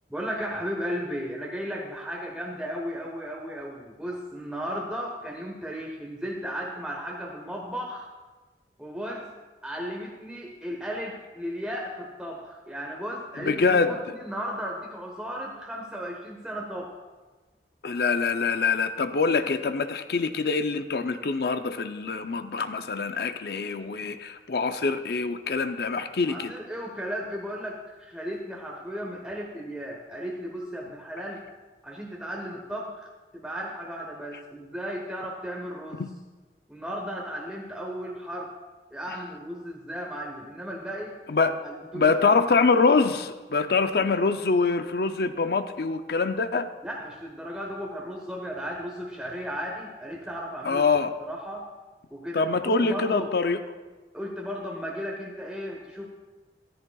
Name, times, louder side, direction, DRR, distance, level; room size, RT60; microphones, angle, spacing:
voice 1, 0.1-8.1 8.8-9.3 9.6-16.9 26.3-31.4 31.8-33.1 33.3-36.1 36.7-38.5 38.9-41.2 41.6-42.4 43.9-44.0 46.8-50.8 51.2-51.7 52.1-53.3 54.1-56.1, equal, 5° right, -1 dB, 0.8 m, -35 dB
voice 2, 13.5-13.9 17.8-26.5 36.0-36.1 39.1-39.2 41.3-41.6 41.9-46.7 50.6-51.1 52.3-53.6, left 4 dB, 60° left, 9 dB, 0.5 m, -24 dB
13.5 x 13.5 x 2.3 m, 1.2 s
head